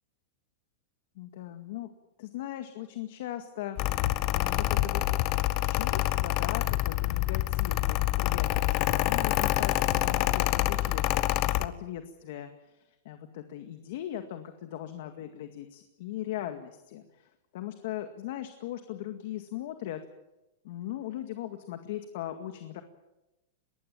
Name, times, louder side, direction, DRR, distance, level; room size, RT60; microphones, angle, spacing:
voice 1, 1.2-1.9 2.2-5.0 5.6-20.0 20.6-22.8, left 12 dB, 60° left, 7 dB, 2.0 m, -39 dB
Mechanical fan, 3.8-11.7, left 16 dB, 40° left, 1.1 m, -27 dB
23.0 x 19.5 x 8.8 m, 0.97 s
supercardioid pair, 150°, 0 cm